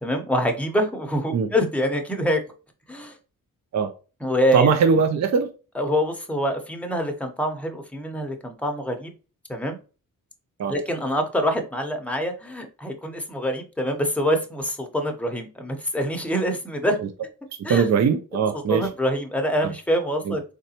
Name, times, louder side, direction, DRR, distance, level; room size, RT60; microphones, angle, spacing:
voice 1, 0.0-2.4 2.9-3.2 4.2-4.8 5.7-9.1 9.5-9.8 10.7-17.0 17.6-17.9 18.5-20.4, equal, 5° left, 0.7 m, -25 dB
voice 2, 4.5-5.5 10.6-10.7 17.7-18.9 19.6-19.7 20.3-20.4, right 6 dB, 50° right, 0.5 m, -20 dB
3.8 x 3.3 x 2.8 m
wide cardioid pair, 120°, 34 cm